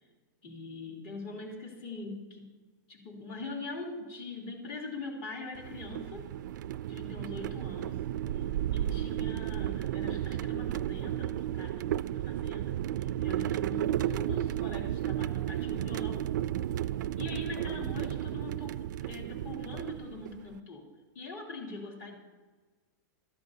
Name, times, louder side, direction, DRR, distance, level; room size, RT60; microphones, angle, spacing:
voice 1, 0.4-2.5 2.9-6.3 6.9-8.0 8.7-16.3 17.2-20.9 21.1-22.1, left 3 dB, 40° left, 0 dB, 3.1 m, -42 dB
sound 1, 5.6-20.6, right 12 dB, 75° right, 0.4 m, -33 dB
20.0 x 13.5 x 2.8 m, 1.3 s
supercardioid pair, 165°, 10 cm